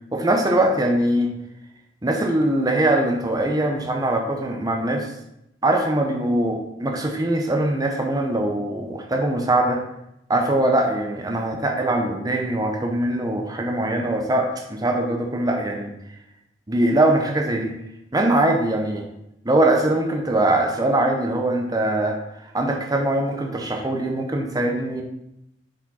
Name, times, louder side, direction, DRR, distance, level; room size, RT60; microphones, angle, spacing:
voice 1, 0.1-1.3 2.0-5.1 5.6-9.8 10.3-15.9 16.7-17.7 18.1-19.0 19.5-22.2 22.4-25.0, right 1 dB, 20° right, 2 dB, 0.7 m, -22 dB
6.0 x 4.9 x 4.2 m, 0.84 s
head